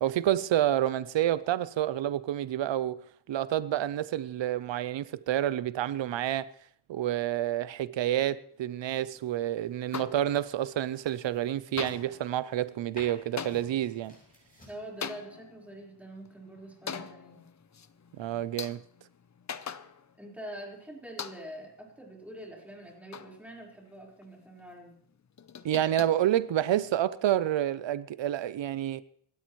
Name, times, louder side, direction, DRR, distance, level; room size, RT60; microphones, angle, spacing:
voice 1, 0.0-3.0 3.3-6.5 6.9-14.2 18.2-18.8 25.6-29.0, right 12 dB, 90° right, 0.6 m, -29 dB
sound 1, 9.0-14.9, left 1 dB, 20° left, 7.6 m, -55 dB
sound 2, 9.9-10.7 11.0-11.5 11.8-20.4 20.6-20.7 21.2-21.7 22.2-23.9 24.2-24.3 24.6-24.7 25.0-27.0, left 7 dB, 40° left, 0.7 m, -43 dB
voice 2, 14.7-17.4 20.2-25.0, right 1 dB, 5° right, 4.2 m, -45 dB
27.0 x 12.5 x 3.1 m
wide cardioid pair, 135°, 43 cm